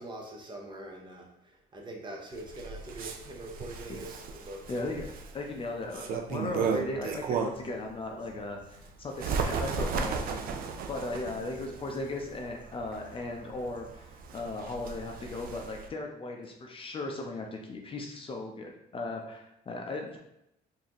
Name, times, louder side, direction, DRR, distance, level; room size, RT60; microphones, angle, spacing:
voice 1, 0.0-4.8, right 1 dB, 30° right, 1 dB, 0.8 m, -44 dB
Bird, 2.3-7.8 8.2-15.9, right 5 dB, 60° right, 0.4 m, -35 dB
voice 2, 4.7-5.1 5.3-10.5 10.9-20.2, left 2 dB, 30° left, 2 dB, 0.6 m, -37 dB
4.0 x 2.7 x 2.9 m, 0.83 s
cardioid pair, 110°, 17 cm